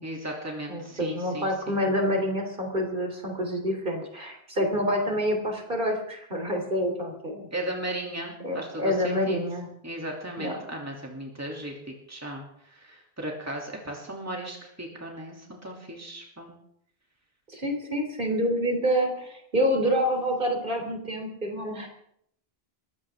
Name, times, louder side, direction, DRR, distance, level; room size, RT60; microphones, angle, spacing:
voice 1, 0.0-1.8 7.5-9.4 9.8-16.5, right 1 dB, 15° right, -1 dB, 2.8 m, -36 dB
voice 2, 0.7-7.5 8.4-9.7 10.4-10.6 17.5-21.9, equal, 55° right, 2 dB, 3.5 m, -27 dB
22.0 x 16.0 x 3.7 m, 0.72 s
omnidirectional pair, 1.1 m